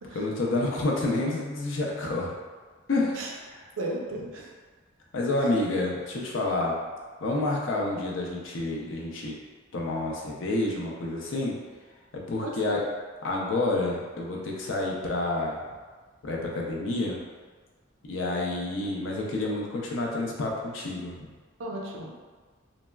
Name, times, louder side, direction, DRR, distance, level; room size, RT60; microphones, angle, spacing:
voice 1, 0.1-2.3 2.9-3.6 5.1-6.8 7.2-9.4 9.7-11.6 12.1-12.8 13.2-15.6 16.2-17.2 18.0-21.3, left 2 dB, 70° left, -2 dB, 0.5 m, -29 dB
voice 2, 3.8-4.5 5.4-5.6 12.4-12.8 21.6-22.1, right 1 dB, 90° right, -1 dB, 0.5 m, -35 dB
3.3 x 2.0 x 2.2 m, 1.4 s
head